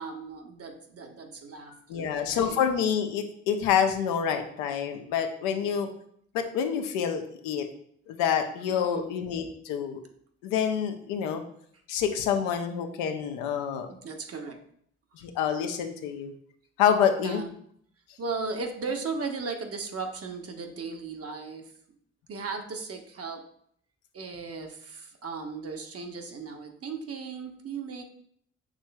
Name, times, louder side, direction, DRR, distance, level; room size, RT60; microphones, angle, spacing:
voice 1, 0.0-2.6 5.4-5.8 8.7-9.1 13.9-14.6 17.2-17.5 18.2-21.7 22.3-23.5 24.1-28.0, right 4 dB, 45° right, 4 dB, 0.7 m, -36 dB
voice 2, 1.9-5.9 6.3-7.7 8.1-10.0 10.4-11.4 11.9-13.9 15.2-16.3 16.8-17.4, left 8 dB, 85° left, 6 dB, 0.5 m, -27 dB
6.1 x 3.1 x 2.2 m, 0.65 s
hypercardioid pair, 40°, 32 cm